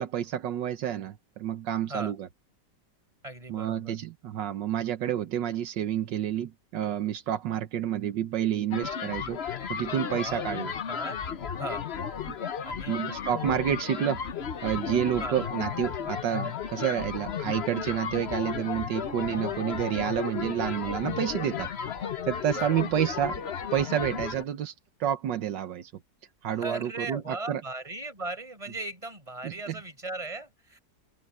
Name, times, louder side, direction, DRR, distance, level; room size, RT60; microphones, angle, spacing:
voice 1, 0.0-2.3 3.5-10.7 12.3-12.4 12.9-14.2 14.6-21.7 22.3-23.4 23.7-24.7 25.0-25.9 26.4-27.6 29.4-29.8, right 10 dB, 80° right, 1.6 m, -29 dB
voice 2, 3.2-4.0 10.1-11.3 11.6-11.9 12.6-13.0 15.2-15.4 22.5-22.8 26.5-30.8, right 2 dB, 20° right, 5.1 m, -38 dB
sound 1, 8.7-24.4, left 7 dB, 45° left, 1.0 m, -34 dB
open air
omnidirectional pair, 1.9 m